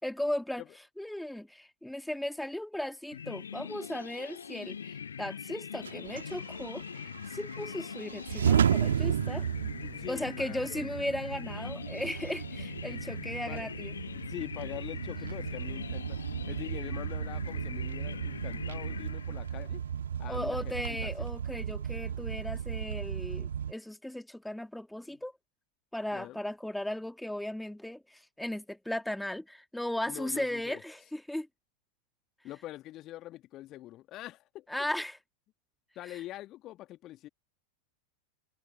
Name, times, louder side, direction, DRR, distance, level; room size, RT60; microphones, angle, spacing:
voice 1, 0.0-0.6 1.0-9.5 10.1-13.9 20.3-25.3 25.9-31.5 34.7-35.2, left 1 dB, 5° left, 2.0 m, -36 dB
sound 1, 3.1-19.7, left 7 dB, 70° left, 1.7 m, -42 dB
sound 2, 5.8-23.7, right 8 dB, 65° right, 2.3 m, -34 dB
voice 2, 9.8-10.8 13.5-13.7 14.1-16.2 16.5-19.8 20.2-21.3 25.1-25.2 26.1-26.4 30.1-30.8 32.4-34.7 36.0-37.3, left 15 dB, 35° left, 2.0 m, -44 dB
figure-of-eight pair, 90°, 0 cm